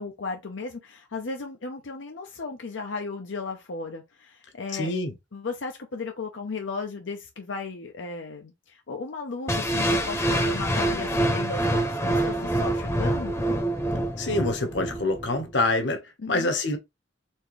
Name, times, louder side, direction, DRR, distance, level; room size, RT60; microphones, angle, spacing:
voice 1, 0.0-4.9 5.3-13.4 16.2-16.5, left 4 dB, 90° left, 0.7 m, -35 dB
voice 2, 4.7-5.1 14.2-16.0 16.3-16.8, left 2 dB, 65° left, 1.1 m, -26 dB
sound 1, 9.5-15.5, right 1 dB, 15° left, 0.7 m, -26 dB
4.5 x 3.4 x 3.1 m
head